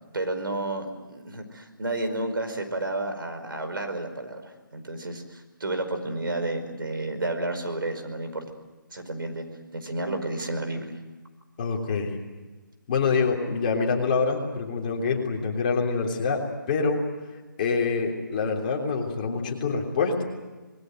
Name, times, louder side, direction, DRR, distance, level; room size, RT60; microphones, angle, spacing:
voice 1, 0.1-8.4 8.9-9.5 9.7-11.0, right 2 dB, 80° right, 7 dB, 5.1 m, -31 dB
voice 2, 11.6-12.2 12.9-17.0 17.6-20.2, left 4 dB, 25° left, 0 dB, 3.4 m, -26 dB
27.0 x 21.0 x 7.8 m, 1.2 s
hypercardioid pair, 170°, 11 cm